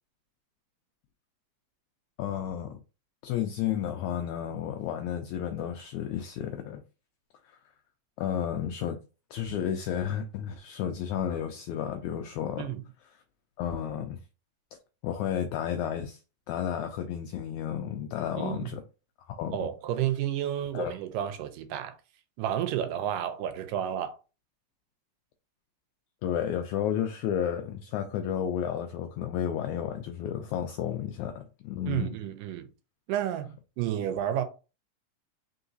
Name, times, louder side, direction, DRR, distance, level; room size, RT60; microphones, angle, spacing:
voice 1, 2.2-2.8 3.2-6.8 7.4-7.6 8.2-9.0 9.3-12.7 13.6-14.2 15.0-16.2 16.5-18.8 19.3-19.7 20.7-21.0 26.2-32.2, left 9 dB, 90° left, 1.7 m, -32 dB
voice 2, 18.4-18.7 19.5-22.0 22.4-24.2 31.9-32.7 33.1-34.4, right 11 dB, 85° right, 2.2 m, -31 dB
4.6 x 3.8 x 2.6 m
omnidirectional pair, 3.9 m